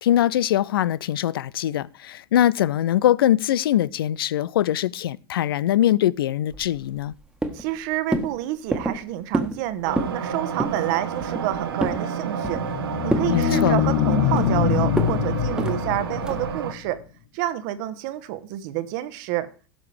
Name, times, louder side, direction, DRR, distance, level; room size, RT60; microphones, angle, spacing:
voice 1, 0.0-7.1 13.3-13.8, left 12 dB, 70° left, 0.4 m, -22 dB
sound 1, 6.5-7.1 7.4-7.8 8.1-8.3 8.7-9.0 9.3-9.6 9.9-10.2 10.6-10.8 11.2-12.0 12.4-12.8 13.1-13.3 13.7-14.6 15.0-15.2 15.6-15.8 16.2-16.5, right 1 dB, 5° right, 1.5 m, -27 dB
voice 2, 7.5-12.6 13.0-17.0 17.3-19.5, right 14 dB, 55° right, 1.1 m, -28 dB
sound 2, 9.8-16.7, right 7 dB, 75° right, 1.3 m, -30 dB
sound 3, 12.5-17.0, left 9 dB, 50° left, 1.1 m, -24 dB
16.5 x 6.6 x 3.4 m
figure-of-eight pair, 85°, 12 cm